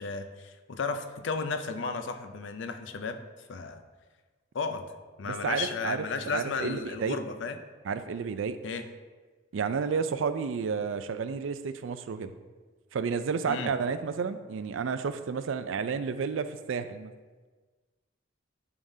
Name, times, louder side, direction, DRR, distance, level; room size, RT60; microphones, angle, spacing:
voice 1, 0.0-3.2 3.5-3.8 4.5-4.8 5.2-7.6 8.6-8.8 13.5-13.7, left 4 dB, 70° left, 9 dB, 0.5 m, -34 dB
voice 2, 5.2-7.2 7.8-8.6 9.5-12.3 12.9-17.1, right 5 dB, 75° right, 11 dB, 0.4 m, -31 dB
10.5 x 3.7 x 2.7 m, 1.4 s
head